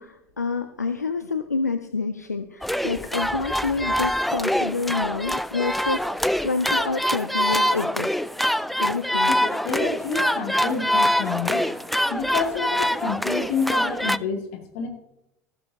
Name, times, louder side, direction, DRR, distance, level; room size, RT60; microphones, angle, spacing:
voice 1, 0.0-8.1 8.8-9.3, left 4 dB, 85° left, 8 dB, 0.6 m, -28 dB
sound 1, 2.6-14.2, equal, ahead, 0.3 m, -24 dB
voice 2, 9.3-11.8 12.1-14.9, left 5 dB, 55° left, 2 dB, 2.5 m, -29 dB
15.0 x 13.0 x 2.8 m, 0.87 s
figure-of-eight pair, 70°, 9 cm